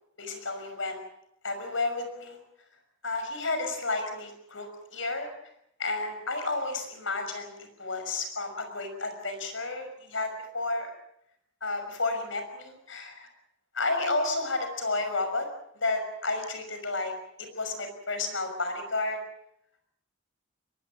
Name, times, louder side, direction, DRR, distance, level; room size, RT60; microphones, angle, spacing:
voice 1, 0.2-1.0 1.4-2.4 3.0-5.3 5.8-10.9 11.6-13.3 13.7-15.5 15.8-17.1 17.4-19.2, left 3 dB, 70° left, 7 dB, 5.9 m, -31 dB
23.0 x 20.5 x 7.5 m, 0.76 s
head